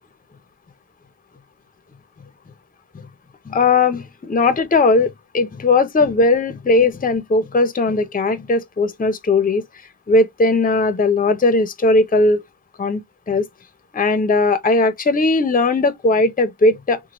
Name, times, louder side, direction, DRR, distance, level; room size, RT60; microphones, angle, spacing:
voice 1, 3.5-9.6 10.1-12.4 12.8-13.0 13.3-13.4 13.9-17.0, left 3 dB, 25° left, 0.4 m, -18 dB
3.0 x 2.3 x 2.8 m
wide cardioid pair, 45°, 38 cm